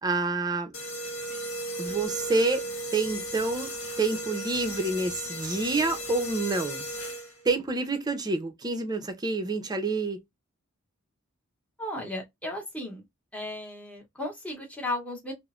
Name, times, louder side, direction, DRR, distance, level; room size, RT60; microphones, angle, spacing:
voice 1, 0.0-0.7 1.8-2.6 2.9-3.7 4.0-6.9 7.4-10.2, right 3 dB, 20° right, 0.5 m, -28 dB
sound 1, 0.7-7.5, right 1 dB, 70° left, 0.9 m, -36 dB
voice 2, 11.8-13.0 13.3-15.3, left 1 dB, 5° left, 0.9 m, -35 dB
3.0 x 2.1 x 2.3 m
head